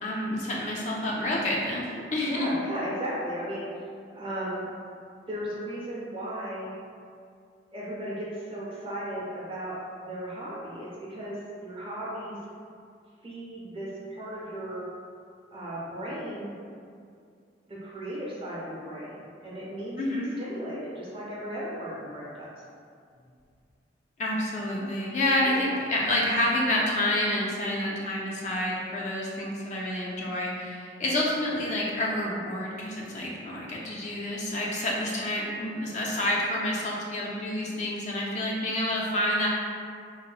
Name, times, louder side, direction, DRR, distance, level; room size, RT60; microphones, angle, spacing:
voice 1, 0.0-2.6 20.0-20.3 24.2-39.5, left 1 dB, 40° left, -3 dB, 0.3 m, -28 dB
voice 2, 2.2-3.7 4.1-4.6 5.3-6.7 7.7-9.7 10.0-12.4 13.2-14.8 15.5-16.5 17.7-22.5 25.4-25.8 31.0-31.1, right 1 dB, 30° right, -7 dB, 0.7 m, -36 dB
3.2 x 2.1 x 2.4 m, 2.3 s
head